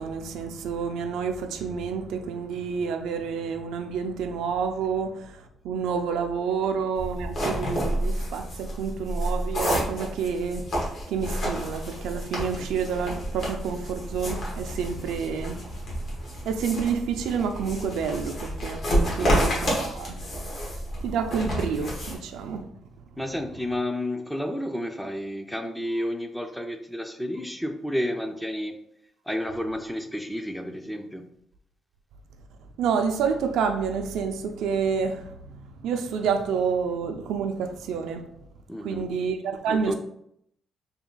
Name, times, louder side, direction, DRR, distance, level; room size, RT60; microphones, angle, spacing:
voice 1, 0.0-20.2 21.0-22.7 32.8-38.2 38.8-39.9, right 6 dB, 85° right, 0.4 m, -29 dB
sound 1, 6.9-22.1, equal, 60° left, 1.5 m, -29 dB
voice 2, 23.2-28.8 29.3-31.3 38.7-39.1 39.7-39.9, left 1 dB, 5° left, 0.4 m, -31 dB
3.4 x 2.2 x 3.8 m
cardioid pair, 90°, 0 cm